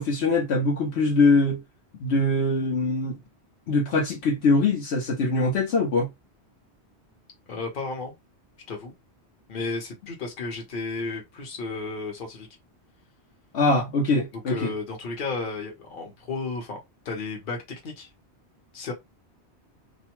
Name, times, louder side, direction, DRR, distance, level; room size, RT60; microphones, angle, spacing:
voice 1, 0.0-1.6 2.0-3.2 3.7-6.1 13.5-14.7, left 2 dB, 75° left, 1.0 m, -22 dB
voice 2, 7.5-8.1 8.7-8.9 9.5-12.5 14.5-18.1 18.7-18.9, left 3 dB, 50° left, 1.0 m, -33 dB
2.5 x 2.1 x 2.9 m
omnidirectional pair, 1.1 m